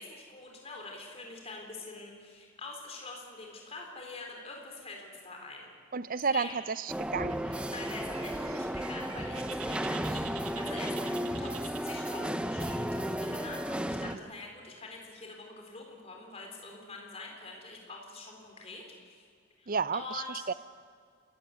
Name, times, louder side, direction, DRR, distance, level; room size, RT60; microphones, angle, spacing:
voice 1, 0.0-5.7 6.3-6.6 7.4-19.3 19.6-20.5, left 3 dB, 30° left, 1 dB, 3.9 m, -45 dB
voice 2, 5.9-7.3 19.7-20.2 20.5-20.6, right 5 dB, 40° right, 17 dB, 0.5 m, -31 dB
sound 1, 6.9-14.2, equal, 5° right, 0.7 m, -34 dB
Bird, 7.3-12.3, right 8 dB, 80° right, 1.7 m, -48 dB
28.0 x 15.0 x 9.4 m, 2.1 s
head